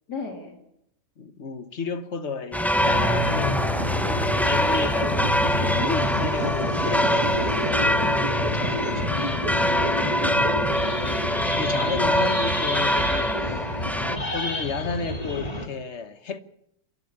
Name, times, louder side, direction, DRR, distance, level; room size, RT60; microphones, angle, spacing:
voice 1, 0.1-0.6 10.8-11.5 13.3-13.5, left 5 dB, 85° left, 3.3 m, -40 dB
voice 2, 1.2-3.7 4.3-7.6 8.5-9.2 11.6-13.6 14.3-16.4, left 5 dB, 45° left, 1.4 m, -32 dB
sound 1, 2.5-14.2, equal, ahead, 0.5 m, -24 dB
sound 2, 2.8-15.7, left 1 dB, 25° left, 1.8 m, -29 dB
sound 3, 4.8-10.7, right 6 dB, 90° right, 2.5 m, -33 dB
28.5 x 12.0 x 8.7 m
omnidirectional pair, 1.7 m